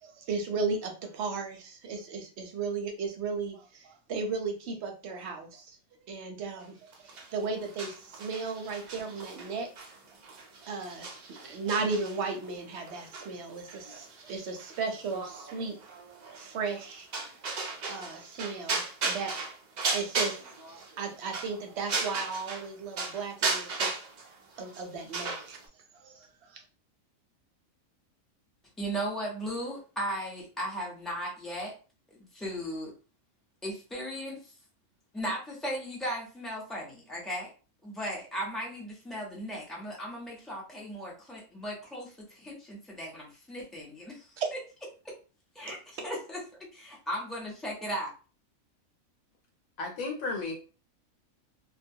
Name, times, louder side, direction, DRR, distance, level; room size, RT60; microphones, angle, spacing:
voice 1, 0.0-5.8 6.1-6.7 7.0-9.7 10.6-11.1 11.4-15.8 16.3-17.1 17.9-19.3 19.9-20.4 21.0-23.9 24.6-25.6 25.9-26.6 44.4-44.5, right 4 dB, 65° right, 4 dB, 0.7 m, -35 dB
sound 1, 6.9-22.7 23.0-25.6, right 3 dB, 85° right, 0.4 m, -36 dB
voice 2, 28.8-31.7 32.1-32.9 33.6-34.5 35.1-37.5 37.8-44.4 45.0-45.1 45.5-46.4 46.7-48.1, equal, ahead, -3 dB, 0.4 m, -36 dB
voice 3, 49.8-50.5, left 3 dB, 80° left, 1 dB, 1.1 m, -33 dB
2.3 x 2.2 x 2.6 m, 0.35 s
omnidirectional pair, 1.4 m